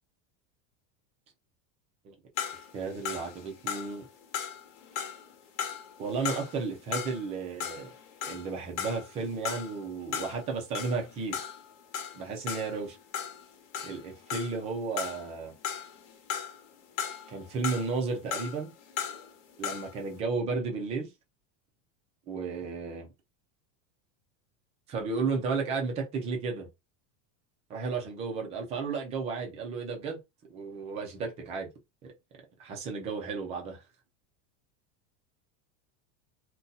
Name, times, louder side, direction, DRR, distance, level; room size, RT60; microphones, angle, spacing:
sound 1, 2.4-7.3 7.6-14.7 15.0-16.7 17.0-20.0, left 8 dB, 60° left, 1.0 m, -37 dB
voice 1, 2.7-4.1 6.0-7.9 8.2-11.4 12.1-13.0 13.8-15.5 17.3-18.7 19.6-21.1 22.3-23.1 24.9-26.7 27.7-31.7 32.0-32.1 32.6-33.8, right 4 dB, 15° right, 0.4 m, -33 dB
2.6 x 2.2 x 3.9 m
supercardioid pair, 175°, 41 cm